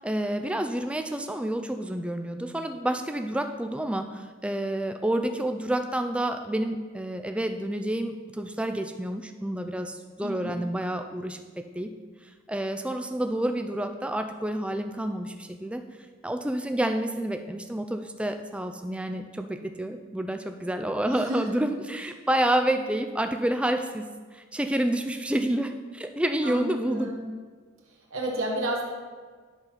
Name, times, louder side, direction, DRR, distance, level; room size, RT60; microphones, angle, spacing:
voice 1, 0.0-11.4 11.7-11.9 12.5-15.8 16.2-27.1, right 1 dB, 5° right, 6 dB, 0.4 m, -29 dB
voice 2, 10.2-10.6 21.1-21.4 26.4-27.3 28.1-28.8, right 1 dB, 75° right, -1 dB, 1.4 m, -31 dB
10.5 x 4.0 x 5.8 m, 1.5 s
head